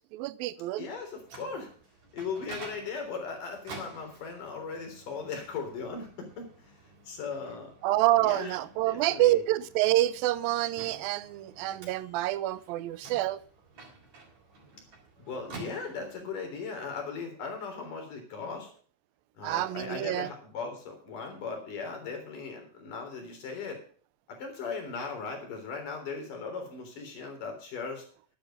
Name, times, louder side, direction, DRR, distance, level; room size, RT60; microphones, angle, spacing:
voice 1, 0.1-0.9 7.8-13.4 19.4-20.3, right 15 dB, 85° right, 2.5 m, -27 dB
voice 2, 0.8-1.7 2.1-6.7 7.0-7.7 8.2-8.6 8.8-9.4 15.2-18.7 19.4-23.8 24.3-28.1, left 5 dB, 65° left, 5.1 m, -38 dB
Microwave oven, 0.9-16.4, right 3 dB, 50° right, 4.8 m, -50 dB
11.5 x 10.5 x 5.6 m
omnidirectional pair, 4.1 m